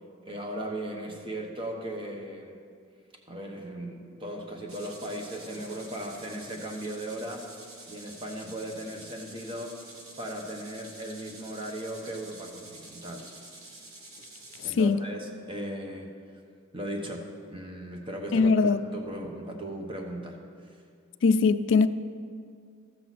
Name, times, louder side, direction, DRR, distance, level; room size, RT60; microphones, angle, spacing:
voice 1, 0.2-2.6 3.3-7.5 7.9-9.8 10.2-13.3 14.6-16.4 16.7-20.8, right 1 dB, 25° right, 2 dB, 1.0 m, -37 dB
sound 1, 4.7-14.7, right 2 dB, 85° right, 1.5 m, -48 dB
voice 2, 18.3-18.8 21.2-21.9, left 4 dB, 60° left, 13 dB, 0.3 m, -21 dB
13.0 x 7.6 x 4.2 m, 2.2 s
head